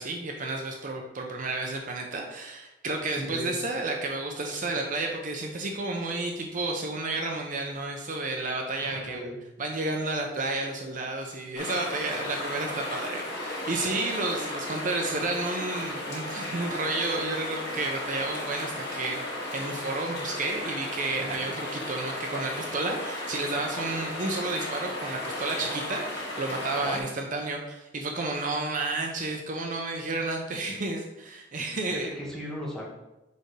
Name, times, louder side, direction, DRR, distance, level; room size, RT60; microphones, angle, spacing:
voice 1, 0.0-9.2 9.6-32.1, right 2 dB, 45° right, 2 dB, 0.7 m, -31 dB
voice 2, 3.2-3.5 8.8-9.4 21.2-21.5 26.7-27.0 31.9-32.9, equal, 5° left, -5 dB, 1.6 m, -37 dB
sound 1, 11.6-27.0, left 1 dB, 65° left, 2.3 m, -35 dB
6.7 x 5.1 x 3.3 m, 0.99 s
head